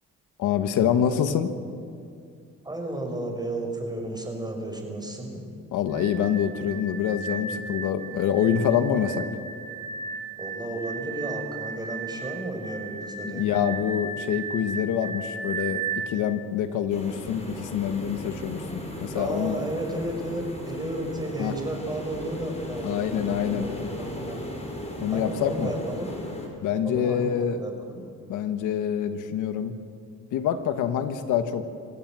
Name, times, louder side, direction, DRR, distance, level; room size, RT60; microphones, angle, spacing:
voice 1, 0.4-1.5 5.7-9.3 13.2-19.5 21.4-21.5 22.8-23.7 25.0-25.7 26.6-27.6 28.3-29.8 30.3-31.7, left 9 dB, 85° left, 9 dB, 1.4 m, -26 dB
voice 2, 2.6-5.4 10.4-13.6 19.1-24.4 25.1-26.1 26.6-28.1, right 1 dB, 15° right, 2 dB, 6.2 m, -33 dB
sound 1, 5.9-16.1, right 5 dB, 70° right, 3.4 m, -35 dB
sound 2, 16.9-26.5, left 1 dB, 20° left, 5.8 m, -37 dB
27.5 x 17.0 x 7.6 m, 2.4 s
cardioid pair, 90°, 30 cm